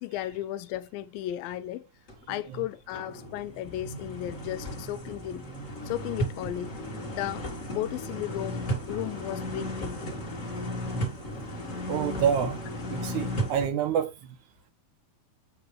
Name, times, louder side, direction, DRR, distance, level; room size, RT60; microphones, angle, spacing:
voice 1, 0.0-1.9 2.3-5.4 5.9-6.8 7.1-10.2, left 13 dB, 80° left, 2.2 m, -35 dB
sound 1, 2.1-2.2 2.7-13.7, equal, 30° left, 1.6 m, -35 dB
voice 2, 11.9-12.6 12.9-14.4, right 8 dB, 70° right, 1.9 m, -28 dB
8.2 x 6.6 x 3.2 m
omnidirectional pair, 4.5 m